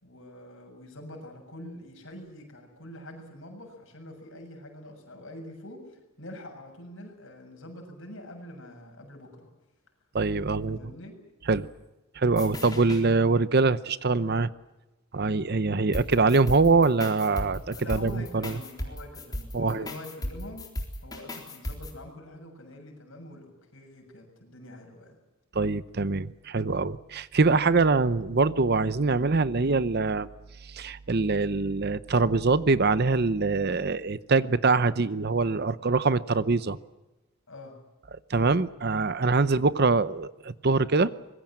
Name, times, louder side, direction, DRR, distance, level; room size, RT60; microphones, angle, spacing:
voice 1, 0.0-9.5 10.7-11.1 17.7-20.7 21.0-25.2 37.5-37.7, left 1 dB, 60° left, 3 dB, 7.3 m, -45 dB
voice 2, 10.1-10.8 11.5-11.7 12.1-14.5 15.1-18.6 19.5-19.9 25.5-30.3 30.6-36.8 38.3-41.1, right 3 dB, 45° right, 16 dB, 0.7 m, -24 dB
sound 1, 12.3-13.0 15.9-21.9, left 1 dB, 15° left, 3.9 m, -36 dB
25.0 x 21.5 x 7.5 m, 1.1 s
head